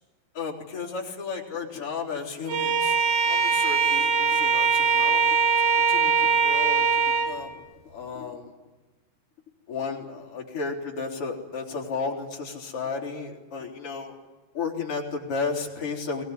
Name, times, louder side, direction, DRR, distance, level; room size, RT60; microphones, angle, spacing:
voice 1, 0.3-3.0 3.3-5.4 5.9-6.9 7.2-8.5 9.7-14.2 14.5-16.2, left 4 dB, 35° left, 0 dB, 4.3 m, -33 dB
Bowed string instrument, 2.5-7.4, right 5 dB, 50° right, 3.9 m, -22 dB
22.0 x 20.0 x 9.8 m, 1.2 s
omnidirectional pair, 4.6 m